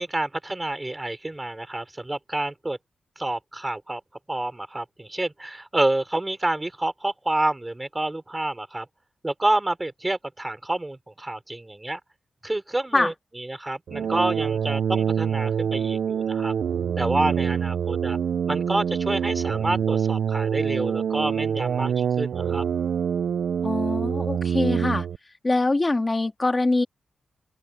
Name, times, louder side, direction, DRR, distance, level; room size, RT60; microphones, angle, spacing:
voice 1, 0.0-2.8 3.2-4.0 4.3-8.9 9.2-12.0 12.4-16.5 17.0-18.2 18.5-22.6, right 2 dB, 15° right, 4.6 m, -28 dB
sound 1, 13.9-25.2, right 8 dB, 75° right, 0.5 m, -25 dB
voice 2, 23.6-25.1 25.4-26.8, left 2 dB, 20° left, 2.9 m, -23 dB
open air
wide cardioid pair, 140°, 0 cm